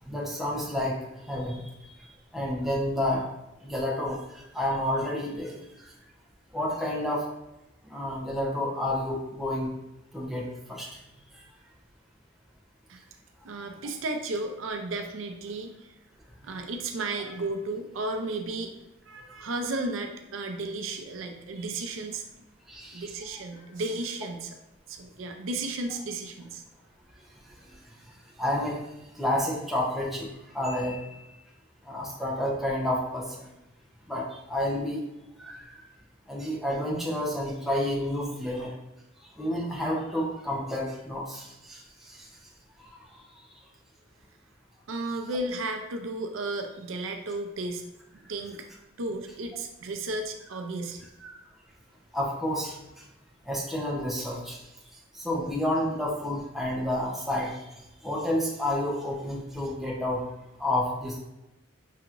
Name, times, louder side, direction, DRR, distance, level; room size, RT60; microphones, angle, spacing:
voice 1, 0.0-3.3 3.6-5.9 6.5-7.3 7.8-9.7 10.1-11.0 11.3-11.4 16.4-16.5 22.7-23.1 27.4-31.4 31.8-33.5 34.1-35.0 35.4-35.8 36.3-38.7 39.2-42.3 42.8-43.2 51.2-51.4 52.1-53.1 53.4-60.3 60.6-61.2, left 1 dB, ahead, -4 dB, 0.7 m, -31 dB
voice 2, 13.4-15.9 16.4-18.7 19.1-22.2 22.9-24.6 24.9-26.6 44.9-47.9 48.3-48.7 49.0-51.1, right 2 dB, 80° right, 5 dB, 0.5 m, -34 dB
5.6 x 2.9 x 2.5 m, 0.96 s
head